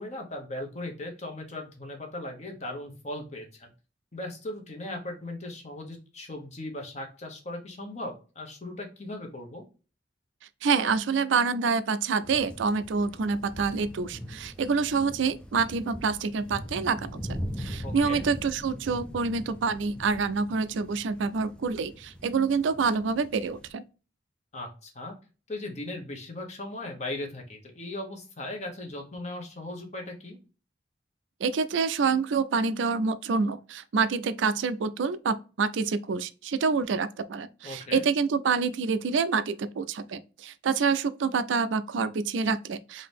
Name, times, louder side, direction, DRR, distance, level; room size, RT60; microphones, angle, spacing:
voice 1, 0.0-3.7 4.1-9.6 17.8-18.2 24.5-25.1 25.5-30.4 37.6-38.0, left 1 dB, 40° left, 1.0 m, -38 dB
voice 2, 10.6-23.8 31.4-43.1, right 5 dB, 85° right, 0.4 m, -27 dB
sound 1, 12.2-23.7, equal, 5° left, 0.4 m, -41 dB
3.8 x 2.7 x 3.4 m
head